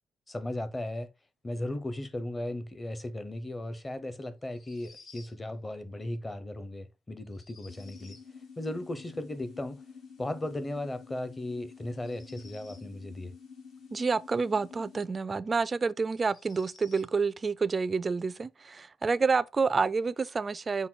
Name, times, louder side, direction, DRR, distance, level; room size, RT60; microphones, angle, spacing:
voice 1, 0.3-1.1 1.4-8.2 8.6-9.8 10.2-13.3, left 1 dB, 20° left, 0.7 m, -36 dB
sound 1, 4.4-5.4 7.3-8.3 11.9-12.9 15.1-15.2 16.1-17.1, left 3 dB, 55° left, 1.9 m, -55 dB
sound 2, 7.7-15.1, left 5 dB, 70° left, 1.5 m, -49 dB
voice 2, 13.9-20.9, right 4 dB, 30° right, 0.3 m, -28 dB
5.8 x 2.2 x 3.7 m
cardioid pair, 90°, 0 cm